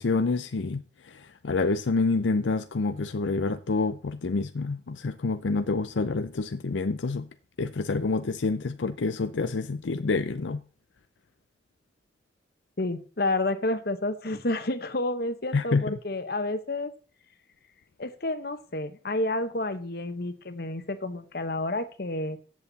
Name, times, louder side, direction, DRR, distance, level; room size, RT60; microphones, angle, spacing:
voice 1, 0.0-7.3 7.6-10.6 15.5-16.0, left 3 dB, 85° left, 0.6 m, -27 dB
voice 2, 12.8-16.9 18.0-22.4, left 2 dB, 55° left, 1.2 m, -30 dB
14.0 x 8.0 x 4.1 m
head